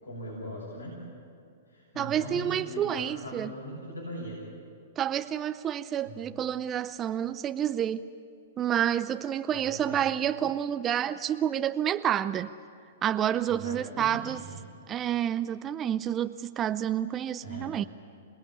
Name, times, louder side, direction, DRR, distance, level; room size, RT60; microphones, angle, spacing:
voice 1, 0.0-1.0 1.7-4.4 6.0-6.2 9.5-10.0 13.5-14.6 17.4-17.8, equal, 90° left, 6.4 m, -40 dB
voice 2, 2.0-3.5 5.0-8.1 8.6-12.5 13.0-14.4 14.9-17.9, right 10 dB, 25° right, 0.6 m, -29 dB
27.0 x 19.5 x 8.5 m
hypercardioid pair, 115°, 0 cm